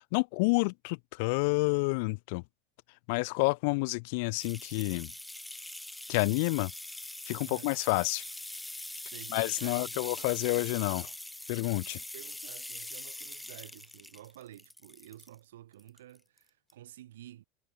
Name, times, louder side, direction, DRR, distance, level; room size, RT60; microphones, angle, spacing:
voice 1, 0.0-2.4 3.1-5.1 6.1-6.7 7.3-8.2 9.3-11.1 11.5-12.0, left 30 dB, 65° left, 0.5 m, -29 dB
sound 1, 4.4-15.4 15.8-16.4 16.7-16.8, left 1 dB, 5° left, 1.1 m, -43 dB
voice 2, 9.0-11.1 12.0-17.4, right 13 dB, 75° right, 2.8 m, -51 dB
hypercardioid pair, 85°, 0 cm